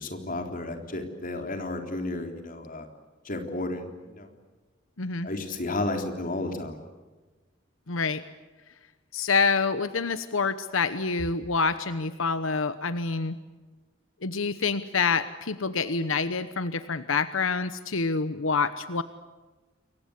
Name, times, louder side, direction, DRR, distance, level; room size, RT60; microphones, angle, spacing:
voice 1, 0.0-2.9 3.2-4.3 5.2-6.8, left 2 dB, 45° left, 5 dB, 3.7 m, -32 dB
voice 2, 5.0-5.3 7.9-8.2 9.1-13.4 14.2-19.0, left 4 dB, 85° left, 12 dB, 1.1 m, -27 dB
28.5 x 23.5 x 8.3 m, 1.3 s
head